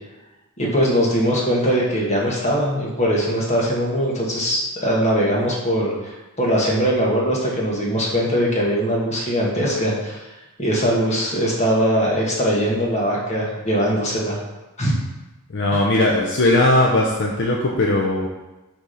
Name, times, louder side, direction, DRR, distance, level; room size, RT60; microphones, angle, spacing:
voice 1, 0.6-10.2 10.6-14.4 14.8-14.9 15.7-15.8, equal, 30° left, -3 dB, 1.4 m, -21 dB
voice 2, 15.5-18.3, left 1 dB, 55° left, -1 dB, 0.6 m, -18 dB
6.4 x 3.5 x 5.6 m, 1.1 s
head